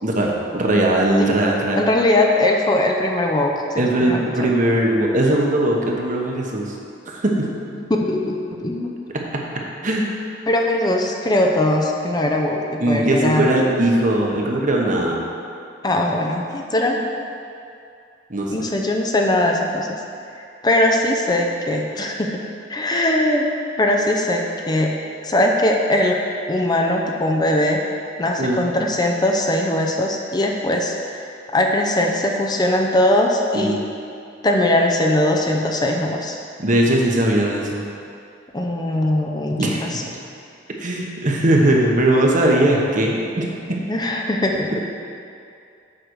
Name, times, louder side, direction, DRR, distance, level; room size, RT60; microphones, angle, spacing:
voice 1, 0.0-1.8 3.8-6.7 7.1-7.5 9.3-9.4 9.8-10.0 12.8-15.2 18.3-18.5 28.4-28.6 33.5-33.8 36.6-37.8 39.6-39.8 40.8-43.5, right 1 dB, 45° right, -1 dB, 1.1 m, -19 dB
voice 2, 1.7-4.5 7.7-9.1 10.5-13.5 15.8-17.2 18.5-20.0 20.4-22.4 22.7-23.5 23.8-25.0 25.2-27.8 28.2-33.8 34.4-36.4 38.5-40.0 43.7-44.7, left 1 dB, 20° left, 1 dB, 0.6 m, -20 dB
7.9 x 5.2 x 6.3 m, 2.5 s
head